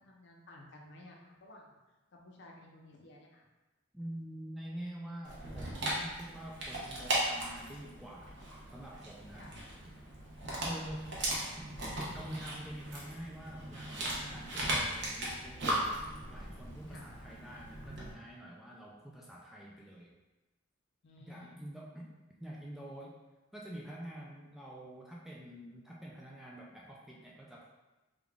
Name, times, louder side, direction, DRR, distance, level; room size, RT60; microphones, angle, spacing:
voice 1, 0.0-1.8 2.1-3.4 9.3-9.6 10.4-10.7 16.9-17.1 21.0-21.6, left 1 dB, 60° left, 0 dB, 0.6 m, -54 dB
voice 2, 3.9-8.4 8.7-9.5 10.7-11.2 11.6-16.0 16.3-20.1 21.3-22.1 22.4-23.2 23.5-27.7, right 1 dB, ahead, -3 dB, 0.3 m, -47 dB
Dog, 5.2-18.1, right 1 dB, 60° right, 0.9 m, -38 dB
3.6 x 2.3 x 3.5 m, 1.1 s
head